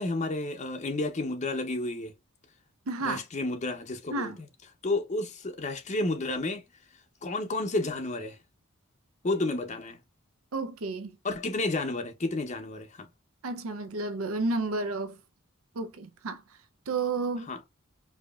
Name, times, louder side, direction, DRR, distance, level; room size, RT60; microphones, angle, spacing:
voice 1, 0.0-2.1 3.0-4.3 4.8-6.6 7.2-8.4 9.2-10.0 11.2-13.1 17.5-17.6, left 2 dB, 35° left, 0.6 m, -31 dB
voice 2, 2.9-3.2 4.1-4.4 10.5-11.2 13.4-15.2 15.7-16.4 16.9-17.5, right 3 dB, 80° right, 0.6 m, -31 dB
4.8 x 2.7 x 2.3 m
head